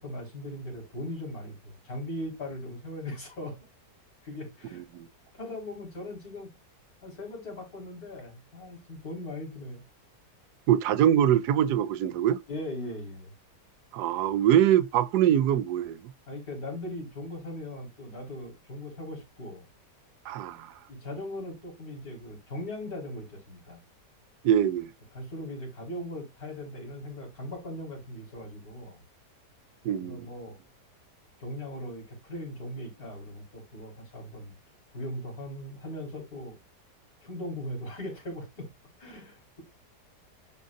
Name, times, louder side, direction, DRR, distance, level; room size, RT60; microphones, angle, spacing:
voice 1, 0.0-3.6 4.2-4.8 5.3-6.5 7.0-9.8 12.5-13.3 16.3-19.6 20.9-23.8 25.1-29.0 29.8-30.6 31.4-34.5 34.9-36.6 37.2-38.7 39.0-39.6, left 1 dB, 60° left, 4.3 m, -39 dB
voice 2, 10.7-12.4 13.9-16.0 20.3-20.7 24.4-24.9 29.8-30.3, right 10 dB, 75° right, 1.1 m, -23 dB
11.5 x 3.8 x 2.6 m
omnidirectional pair, 1.8 m